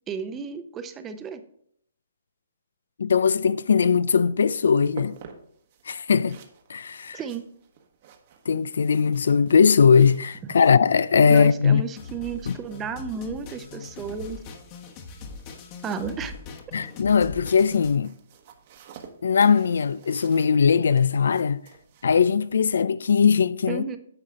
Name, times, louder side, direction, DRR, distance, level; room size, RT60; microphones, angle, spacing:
voice 1, 0.1-1.4 7.1-7.4 11.3-14.4 15.8-16.3 23.7-24.0, right 5 dB, 15° right, 0.7 m, -33 dB
voice 2, 3.0-5.2 5.9-6.4 6.7-7.2 8.5-11.8 12.5-12.6 16.7-18.1 19.2-21.6 22.0-23.8, left 6 dB, 70° left, 0.4 m, -20 dB
sound 1, 4.0-22.8, right 6 dB, 40° right, 1.2 m, -50 dB
sound 2, 12.0-18.0, left 4 dB, 30° left, 1.2 m, -41 dB
9.5 x 6.3 x 3.7 m
hypercardioid pair, 145°, 0 cm